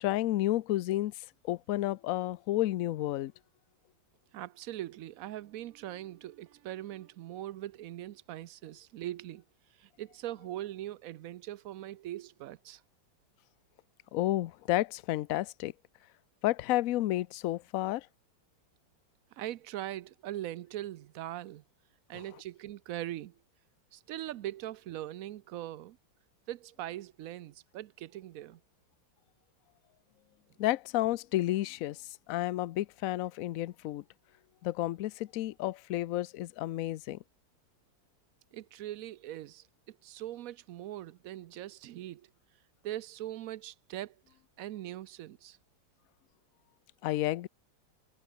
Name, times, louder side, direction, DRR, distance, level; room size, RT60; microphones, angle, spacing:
voice 1, 0.0-3.3 14.1-15.7 16.4-18.1 22.1-22.2 30.6-34.0 34.6-37.2 47.0-47.5, left 15 dB, 75° left, 0.7 m, -31 dB
voice 2, 4.3-9.4 9.7-12.8 19.3-21.6 22.1-23.4 23.9-26.0 26.5-28.6 38.5-42.3 42.8-44.2 44.6-45.6, right 13 dB, 75° right, 0.8 m, -41 dB
omnidirectional pair, 2.0 m